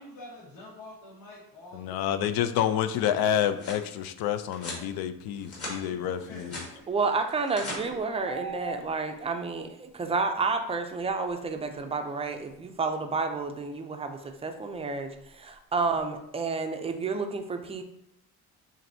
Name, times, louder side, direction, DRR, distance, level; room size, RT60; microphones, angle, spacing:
voice 1, 0.0-2.8 5.9-6.9 7.6-8.0, left 1 dB, 60° left, -9 dB, 1.7 m, -47 dB
voice 2, 1.7-6.6, left 10 dB, 80° left, 10 dB, 0.5 m, -28 dB
sound 1, 3.4-3.8 4.5-4.8 5.3-5.8 6.1-6.7 7.3-7.8, left 1 dB, 40° left, 1.8 m, -39 dB
voice 3, 6.9-17.8, right 4 dB, 20° right, 6 dB, 0.3 m, -30 dB
sound 2, 8.0-9.3 11.7-11.8 14.0-14.4 14.7-14.8 15.1-16.1, right 2 dB, 20° left, 1.0 m, -40 dB
7.3 x 2.6 x 2.6 m, 0.76 s
cardioid pair, 140°, 37 cm